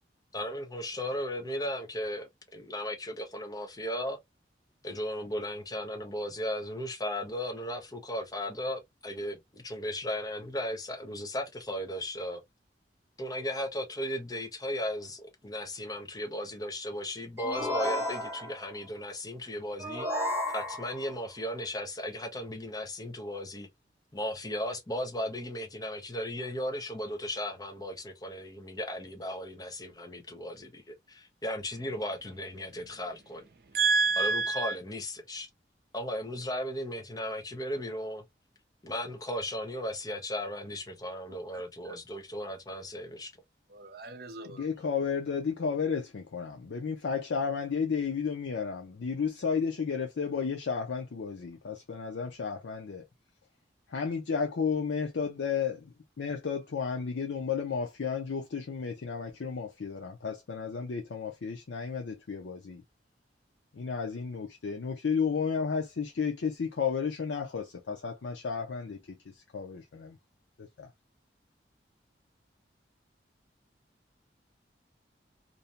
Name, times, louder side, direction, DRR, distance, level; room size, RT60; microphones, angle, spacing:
voice 1, 0.3-4.2 4.8-12.4 13.2-20.1 20.5-23.7 24.1-33.4 34.2-35.5 35.9-38.2 38.8-43.3, left 1 dB, 20° left, 0.5 m, -36 dB
sound 1, 17.4-18.7 19.8-21.1, left 1 dB, 15° right, 0.9 m, -32 dB
voice 2, 33.7-34.8 43.7-44.6, right 4 dB, 55° right, 0.5 m, -28 dB
voice 3, 44.5-53.0 53.9-62.8 63.7-70.2 70.8-70.9, left 6 dB, 90° left, 0.5 m, -33 dB
2.6 x 2.1 x 2.7 m
head